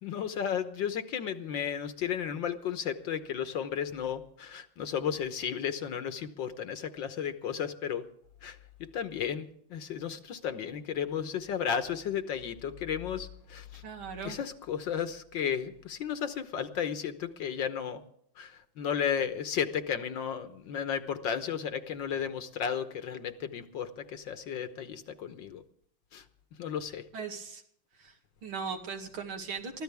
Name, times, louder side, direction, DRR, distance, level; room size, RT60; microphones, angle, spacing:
voice 1, 0.0-8.0 8.4-8.6 8.9-13.8 14.2-18.0 18.4-25.6 26.1-26.2 26.6-27.1, left 8 dB, 65° left, 10 dB, 1.7 m, -34 dB
voice 2, 13.8-14.4 27.1-27.6 27.9-29.8, right 5 dB, 80° right, 3 dB, 3.1 m, -39 dB
23.5 x 15.0 x 3.5 m, 0.68 s
omnidirectional pair, 2.3 m